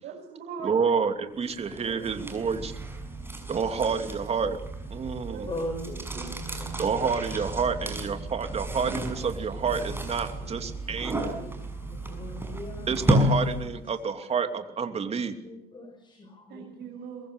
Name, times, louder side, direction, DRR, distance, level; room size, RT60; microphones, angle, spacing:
voice 1, 0.0-2.4 5.2-5.5 6.1-6.3 6.6-6.7 16.5-17.3, right 6 dB, 70° right, -1 dB, 7.0 m, -42 dB
voice 2, 0.6-2.7 3.5-4.6 4.9-5.5 6.8-11.3 12.9-15.3, right 5 dB, 40° right, 8 dB, 3.0 m, -28 dB
sound 1, 1.5-13.9, right 1 dB, 15° right, 6.6 m, -32 dB
voice 3, 5.5-8.1 9.6-9.8 10.4-10.5 10.9-13.2 15.4-16.9, left 1 dB, 25° left, 4 dB, 6.5 m, -41 dB
23.0 x 22.0 x 8.2 m, 0.77 s
cardioid pair, 110°, 17 cm